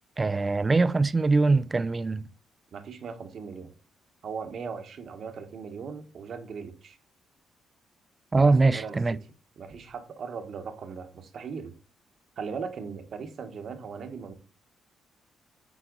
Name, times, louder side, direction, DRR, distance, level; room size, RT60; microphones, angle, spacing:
voice 1, 0.2-2.3 8.3-9.2, right 3 dB, 25° right, 0.4 m, -22 dB
voice 2, 2.7-3.7 4.2-7.0 8.3-9.0 9.6-11.7 12.4-14.3, right 5 dB, 60° right, 1.2 m, -38 dB
9.3 x 4.1 x 3.9 m
cardioid pair, 90°, 0 cm